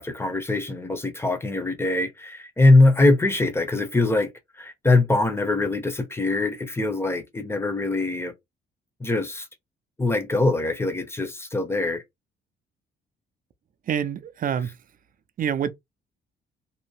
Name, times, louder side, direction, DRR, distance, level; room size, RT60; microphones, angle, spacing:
voice 1, 0.0-4.3 4.6-8.3 9.0-9.5 10.0-12.0, left 2 dB, 10° left, 0.7 m, -22 dB
voice 2, 13.9-14.8 15.4-15.7, right 8 dB, 45° right, 0.4 m, -26 dB
2.7 x 2.0 x 3.0 m
cardioid pair, 90°, 20 cm